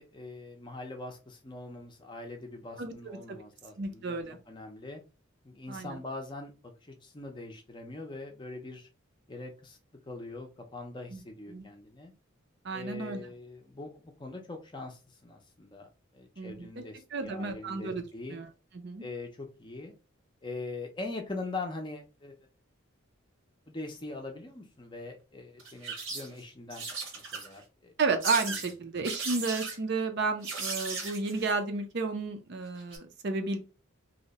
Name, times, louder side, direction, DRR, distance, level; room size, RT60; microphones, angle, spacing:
voice 1, 0.0-4.2 4.5-5.0 5.4-6.5 6.9-8.9 9.3-9.8 10.1-12.1 12.7-15.9 16.1-18.4 19.0-19.9 20.4-22.3 23.7-26.9 27.1-27.9, left 2 dB, 20° left, 3 dB, 0.5 m, -42 dB
voice 2, 2.8-3.4 3.8-4.4 5.7-6.0 11.1-11.2 11.5-11.6 12.6-13.2 16.4-16.7 17.1-18.0 18.3-18.5 18.7-19.0 28.0-33.6, right 4 dB, 55° right, 6 dB, 0.5 m, -32 dB
sound 1, 25.6-26.4 26.7-27.6 28.2-28.7 29.0-29.8 30.4-31.5 32.8-33.0, right 4 dB, 75° right, 1.1 m, -36 dB
2.7 x 2.1 x 3.9 m, 0.31 s
head